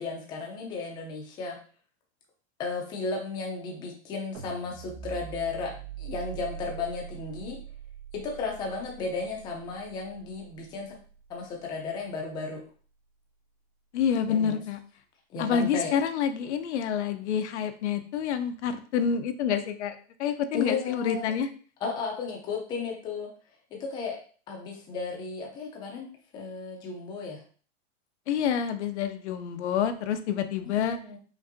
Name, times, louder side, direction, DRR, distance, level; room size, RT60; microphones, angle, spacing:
voice 1, 0.0-1.6 2.6-5.7 6.0-7.6 8.1-11.0 11.3-12.6 14.3-14.6 15.3-15.9 20.5-21.3 21.8-23.3 23.7-24.2 24.5-26.1 26.3-27.4 30.6-31.2, left 4 dB, 15° left, 0 dB, 0.5 m, -34 dB
sound 1, 4.3-10.6, right 8 dB, 80° right, 1.4 m, -43 dB
voice 2, 13.9-14.8 15.4-21.5 28.3-31.0, left 7 dB, 85° left, 9 dB, 0.7 m, -28 dB
5.3 x 2.6 x 2.6 m, 0.41 s
supercardioid pair, 160°, 34 cm